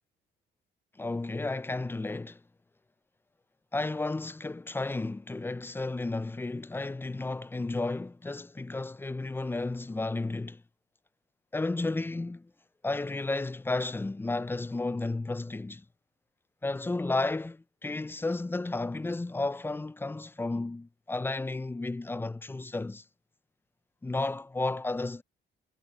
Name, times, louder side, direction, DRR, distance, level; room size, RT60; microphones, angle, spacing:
voice 1, 1.0-2.4 3.7-10.6 11.5-12.5 12.8-15.8 16.6-23.0 24.0-25.2, left 2 dB, 10° left, 0.4 m, -32 dB
cardioid pair, 90°, 20 cm